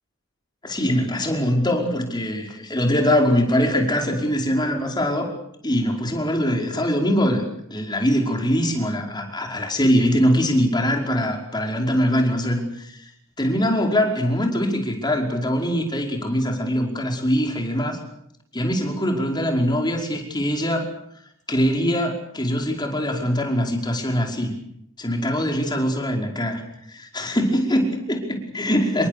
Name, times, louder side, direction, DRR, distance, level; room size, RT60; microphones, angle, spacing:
voice 1, 0.6-5.3 5.6-7.4 7.7-13.1 13.4-18.0 18.5-20.9 21.5-24.6 25.0-26.6 26.9-29.1, equal, 20° left, 2 dB, 5.3 m, -22 dB
28.0 x 23.0 x 6.9 m, 0.72 s
head